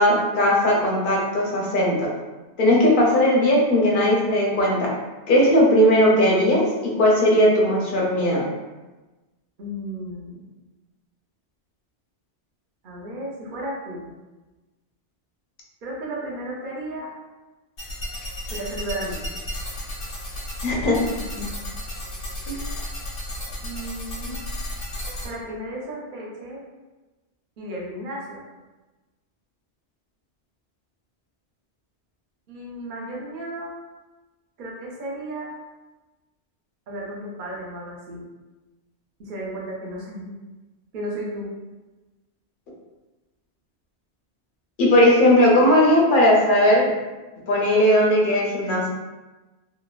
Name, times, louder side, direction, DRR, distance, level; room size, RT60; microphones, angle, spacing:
voice 1, 0.0-2.1 2.6-4.9 5.3-8.4 20.6-21.0 22.5-22.6 44.8-46.9 47.5-48.9, equal, 55° left, -3 dB, 0.7 m, -18 dB
voice 2, 9.6-10.4 12.8-14.1 15.8-17.1 18.5-19.4 21.3-21.7 22.5-22.6 23.6-24.4 25.2-26.6 27.6-28.4 32.5-33.7 34.6-35.5 36.9-38.2 39.2-40.4 40.9-41.5, right 1 dB, 50° right, -3 dB, 0.7 m, -34 dB
sound 1, 17.8-25.3, left 1 dB, 90° left, 1.2 m, -33 dB
3.1 x 2.0 x 2.3 m, 1.2 s
omnidirectional pair, 1.2 m